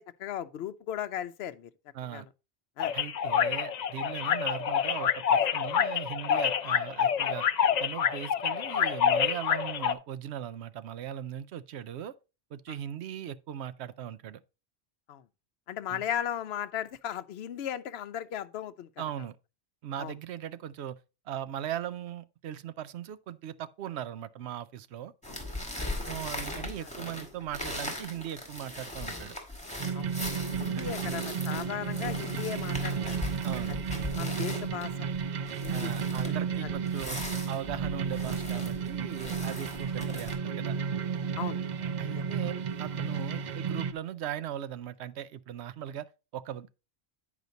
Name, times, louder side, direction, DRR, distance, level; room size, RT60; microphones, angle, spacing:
voice 1, 0.0-1.7 2.1-2.3 2.8-2.9 12.7-12.8 15.1-15.2 15.7-18.9 20.0-20.1 25.3-25.4 26.1-26.2 26.8-26.9 29.9-30.1 30.4-33.1 33.7-33.8 34.2-35.1 35.6-35.9 36.2-36.3 36.6-36.7 41.4-41.9 43.1-43.2, left 10 dB, 70° left, 0.8 m, -37 dB
voice 2, 1.9-2.3 2.9-7.4 7.8-12.1 12.5-14.4 15.9-16.0 19.0-19.4 19.8-21.0 21.3-25.1 26.1-29.4 30.5-31.3 33.4-33.8 35.7-37.2 37.5-40.8 42.0-42.5 42.8-46.8, right 10 dB, 75° right, 0.9 m, -39 dB
sound 1, 2.8-9.9, left 8 dB, 55° left, 0.5 m, -27 dB
sound 2, 25.2-40.3, left 1 dB, 5° left, 1.9 m, -39 dB
sound 3, 29.8-43.9, right 6 dB, 55° right, 0.5 m, -33 dB
9.4 x 5.0 x 3.9 m
omnidirectional pair, 1.1 m